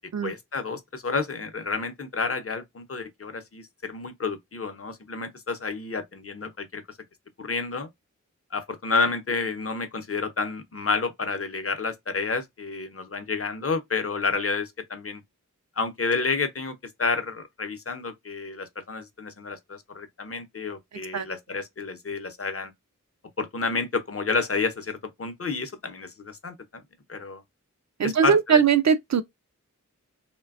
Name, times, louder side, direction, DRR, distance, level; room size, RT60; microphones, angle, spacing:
voice 1, 0.2-6.8 7.4-7.9 8.5-15.2 15.8-22.7 23.4-26.8 27.1-27.4 28.0-28.6, left 4 dB, 45° left, 0.7 m, -30 dB
voice 2, 28.0-29.2, right 7 dB, 60° right, 0.5 m, -20 dB
3.2 x 2.2 x 2.3 m
wide cardioid pair, 55°, 31 cm